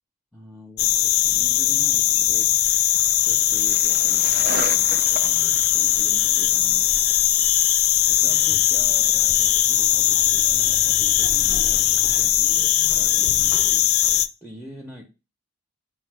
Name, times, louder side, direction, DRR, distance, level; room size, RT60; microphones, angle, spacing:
voice 1, 0.3-2.5 3.1-7.3 8.1-15.0, equal, ahead, 1 dB, 0.6 m, -44 dB
sound 1, 0.8-14.3, left 12 dB, 80° left, 0.3 m, -19 dB
Skateboard, 1.3-11.9, right 5 dB, 45° right, 0.4 m, -40 dB
sound 2, 8.5-12.3, left 2 dB, 65° right, 0.9 m, -44 dB
5.3 x 2.0 x 4.5 m, 0.29 s
head